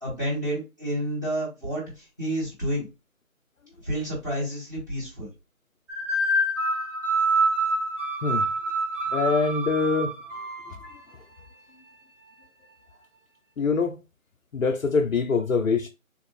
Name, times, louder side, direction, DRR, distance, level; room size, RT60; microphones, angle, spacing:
voice 1, 0.0-2.9 3.8-5.3, right 1 dB, 15° right, 1.4 m, -30 dB
sound 1, 5.9-11.0, right 2 dB, 60° right, 1.3 m, -26 dB
voice 2, 9.1-10.2 10.7-10.8 13.6-14.0 14.5-15.9, left 4 dB, 70° left, 0.6 m, -24 dB
3.7 x 2.5 x 3.0 m
figure-of-eight pair, 170°, 42 cm